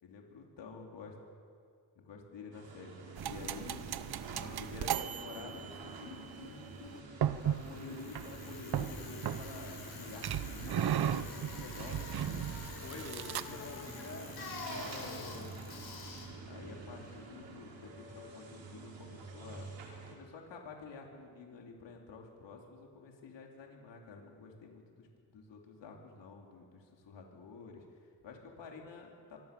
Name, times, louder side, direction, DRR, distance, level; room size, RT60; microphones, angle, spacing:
voice 1, 0.0-1.1 2.0-2.9 3.3-4.2 4.6-12.1 16.5-19.7 20.1-29.4, left 5 dB, 75° left, 0 dB, 4.0 m, -50 dB
sound 1, 2.5-20.1, right 3 dB, 85° right, 4.8 m, -48 dB
sound 2, 3.2-6.1 7.2-7.7 8.1-8.3 8.7-9.8 10.2-13.7, right 10 dB, 60° right, 0.9 m, -36 dB
Bicycle, 7.5-17.5, left 4 dB, 60° left, 7.2 m, -47 dB
voice 2, 12.8-15.6, left 3 dB, 35° left, 1 dB, 4.5 m, -48 dB
25.0 x 24.0 x 7.2 m, 2.2 s
cardioid pair, 115°, 43 cm